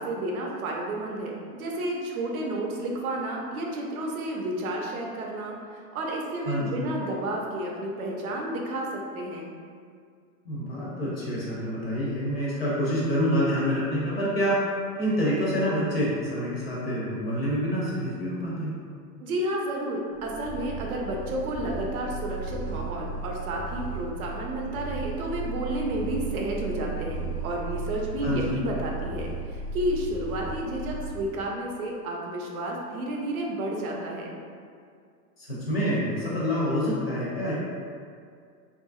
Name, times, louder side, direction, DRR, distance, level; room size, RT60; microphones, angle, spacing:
voice 1, 0.0-9.5 19.2-34.4, right 1 dB, 65° right, -1 dB, 0.6 m, -31 dB
voice 2, 6.5-6.8 10.4-14.6 15.0-18.7 28.2-28.6 35.4-37.5, equal, 40° left, -6 dB, 0.4 m, -27 dB
Purr, 20.2-31.5, right 3 dB, 10° right, 0.5 m, -35 dB
2.7 x 2.4 x 2.3 m, 2.2 s
supercardioid pair, 175°, 47 cm